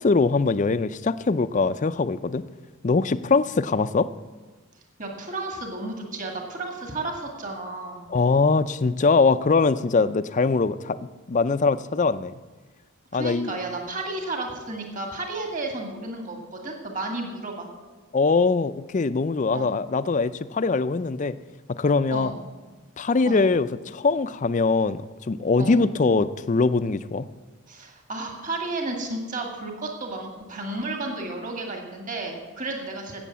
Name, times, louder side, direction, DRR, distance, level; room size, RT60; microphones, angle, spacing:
voice 1, 0.0-2.4 2.8-4.1 8.1-12.3 13.1-13.5 18.1-21.4 21.7-22.3 23.0-27.3, left 4 dB, 35° left, 14 dB, 0.4 m, -22 dB
voice 2, 5.0-8.0 13.1-17.7 19.5-19.7 22.1-22.4 23.3-23.4 25.6-25.8 27.7-33.2, right 2 dB, 35° right, 2 dB, 1.9 m, -32 dB
12.5 x 8.5 x 7.3 m, 1.3 s
head